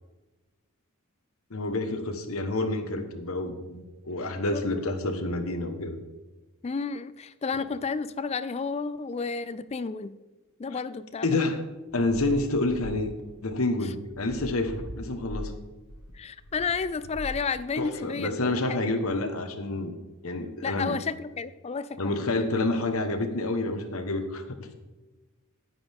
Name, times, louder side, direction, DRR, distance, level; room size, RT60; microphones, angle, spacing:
voice 1, 1.5-6.0 11.2-11.6 11.9-13.1 13.4-15.6 17.8-20.0 20.2-20.9 22.0-24.7, left 2 dB, 70° left, 7 dB, 1.2 m, -28 dB
voice 2, 6.6-10.1 10.6-11.6 16.1-18.4 18.7-18.9 20.6-22.0, left 5 dB, 30° left, 15 dB, 0.3 m, -31 dB
sound 1, 11.9-17.9, equal, 90° left, 1.3 m, -41 dB
10.0 x 9.9 x 3.6 m, 1.2 s
head